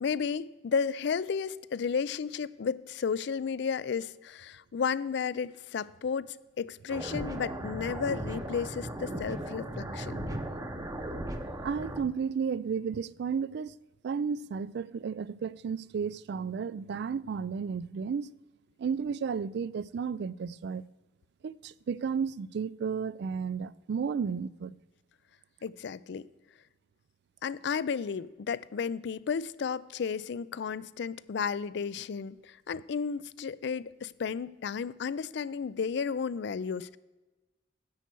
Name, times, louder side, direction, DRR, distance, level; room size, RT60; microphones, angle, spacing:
voice 1, 0.0-10.3 25.6-26.3 27.4-37.0, left 6 dB, 65° left, 0.4 m, -33 dB
sound 1, 6.9-12.0, right 1 dB, 20° right, 0.8 m, -37 dB
voice 2, 11.6-13.8 14.0-18.3 18.8-20.8 21.4-24.7, right 6 dB, 60° right, 0.3 m, -33 dB
10.5 x 8.0 x 4.5 m
head